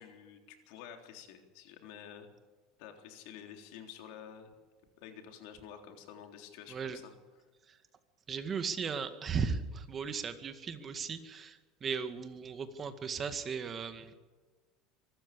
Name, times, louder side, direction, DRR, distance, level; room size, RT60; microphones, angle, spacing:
voice 1, 0.0-2.3 2.8-4.5 5.0-7.1, left 8 dB, 70° left, 4 dB, 3.5 m, -50 dB
voice 2, 6.7-7.0 7.7-7.8 8.3-14.2, right 6 dB, 30° right, 9 dB, 1.9 m, -37 dB
24.0 x 13.5 x 8.6 m, 1.4 s
supercardioid pair, 135°, 0 cm